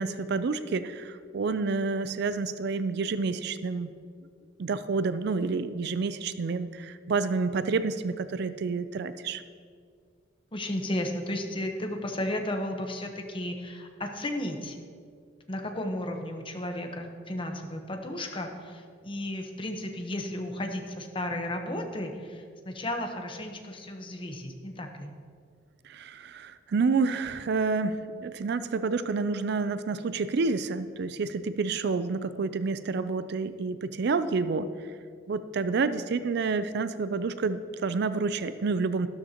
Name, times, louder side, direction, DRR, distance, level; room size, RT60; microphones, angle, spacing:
voice 1, 0.0-3.9 4.6-9.4 25.8-34.7 35.3-39.1, right 4 dB, 60° right, 13 dB, 0.4 m, -29 dB
voice 2, 10.5-14.8 15.5-25.1, left 1 dB, 30° left, 4 dB, 1.0 m, -34 dB
13.0 x 12.5 x 2.9 m, 2.1 s
head